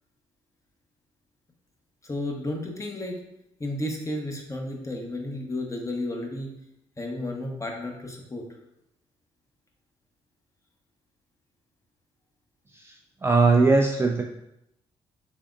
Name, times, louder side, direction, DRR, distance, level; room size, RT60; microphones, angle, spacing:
voice 1, 2.0-3.1 3.6-6.6 7.0-8.6, left 1 dB, 20° left, 2 dB, 0.9 m, -32 dB
voice 2, 13.2-14.2, right 3 dB, 15° right, 1 dB, 0.4 m, -20 dB
3.5 x 3.4 x 2.4 m, 0.81 s
hypercardioid pair, 45°, 15 cm